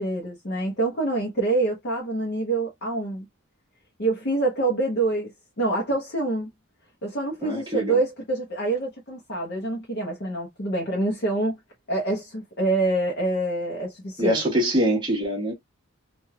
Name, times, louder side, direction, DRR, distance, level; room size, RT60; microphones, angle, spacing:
voice 1, 0.0-3.3 4.0-5.3 5.6-6.5 7.0-11.6 11.9-14.4, right 2 dB, 50° left, 0.9 m, -26 dB
voice 2, 7.4-8.0 14.2-15.5, equal, 20° right, 1.1 m, -24 dB
3.2 x 2.5 x 2.2 m
head